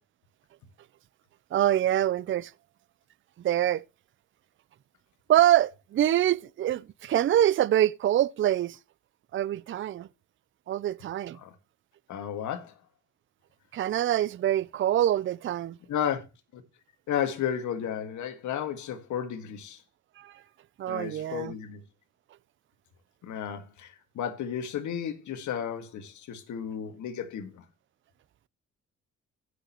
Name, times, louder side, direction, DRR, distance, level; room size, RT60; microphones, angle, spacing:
voice 1, 1.5-2.5 3.4-3.8 5.3-8.8 9.3-10.1 10.7-11.4 13.7-15.8 20.2-20.3 20.8-21.5, right 12 dB, 40° right, 0.4 m, -25 dB
voice 2, 12.1-12.7 15.9-16.2 16.5-16.6 17.1-19.8 20.9-21.8 23.2-27.6, left 9 dB, 75° left, 1.9 m, -33 dB
15.0 x 6.5 x 3.0 m
cardioid pair, 90°, 30 cm